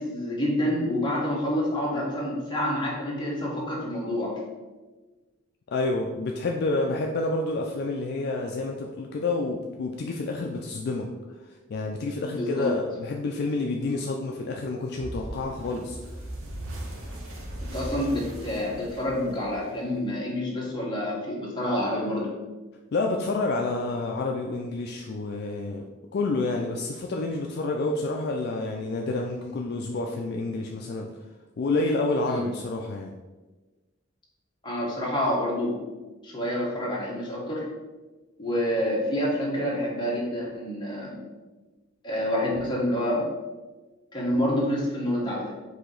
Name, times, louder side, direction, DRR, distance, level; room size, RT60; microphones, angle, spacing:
voice 1, 0.0-4.4 12.2-12.8 17.6-22.3 32.2-32.5 34.6-35.8 36.2-37.6 38.4-41.3 42.0-43.2 44.1-45.5, left 1 dB, 20° left, -5 dB, 1.1 m, -28 dB
voice 2, 5.7-11.1 11.7-16.0 22.9-25.9 26.1-31.1 31.6-33.1, left 2 dB, 50° left, 1 dB, 0.3 m, -29 dB
sound 1, 14.9-20.1, right 1 dB, 75° right, 0.9 m, -38 dB
4.8 x 2.8 x 3.8 m, 1.2 s
head